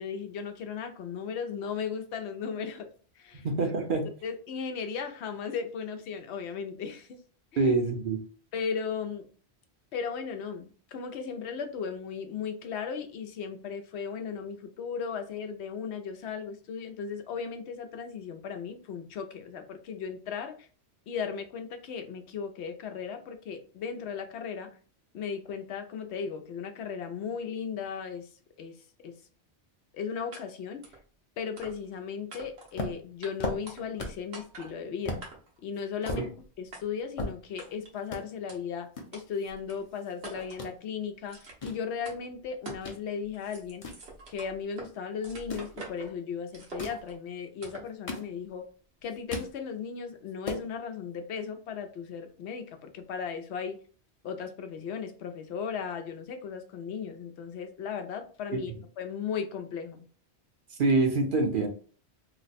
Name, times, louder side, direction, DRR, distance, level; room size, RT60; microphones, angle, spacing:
voice 1, 0.0-2.9 3.2-3.5 4.2-7.2 7.5-7.6 8.5-9.3 9.9-20.7 21.1-24.7 25.1-28.3 28.6-29.2 29.9-30.8 31.4-35.2 35.6-36.3 36.6-43.9 44.3-48.6 49.0-53.8 54.2-58.7 59.0-60.0, left 6 dB, 80° left, 7 dB, 0.9 m, -36 dB
voice 2, 3.3-4.1 7.6-8.2 36.1-36.3 60.8-61.7, right 3 dB, 55° right, 3 dB, 0.8 m, -25 dB
sound 1, 30.3-30.4 30.8-31.0 31.6-32.0 32.3-32.8 33.2-33.3 33.7-34.1 34.3-34.7 35.2-35.6 36.0-36.3 36.7-36.8 37.6-37.9 38.5-38.6 39.1-39.2 39.7-39.8 40.2-40.6 41.3-41.7 42.0-42.2 42.6-42.9 43.2-44.9 45.2-46.1 46.5-47.1 47.6-47.9, right 3 dB, 75° right, 1.2 m, -45 dB
sound 2, 32.7-34.3 34.6-34.7 35.0-35.3 35.7-37.7 38.0-38.2 38.9-40.1 40.4-40.7 41.3-43.0 43.4-44.7 45.3-45.7 46.6-47.1 47.7-48.7 49.0-49.6 50.0-50.1 50.3-50.7, left 2 dB, 35° left, 0.6 m, -37 dB
3.0 x 2.1 x 4.0 m, 0.41 s
omnidirectional pair, 1.1 m